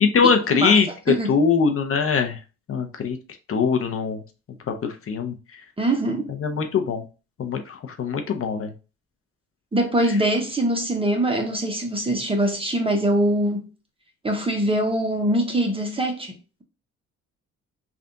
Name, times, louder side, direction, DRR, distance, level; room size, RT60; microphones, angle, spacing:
voice 1, 0.0-2.4 2.7-3.2 3.5-4.2 4.7-5.3 6.4-7.0 7.4-8.7, left 5 dB, 45° left, 0.7 m, -22 dB
voice 2, 5.8-6.3 9.7-13.7 14.2-16.3, right 1 dB, 20° right, 0.9 m, -23 dB
3.4 x 2.5 x 3.9 m
cardioid pair, 90°, 30 cm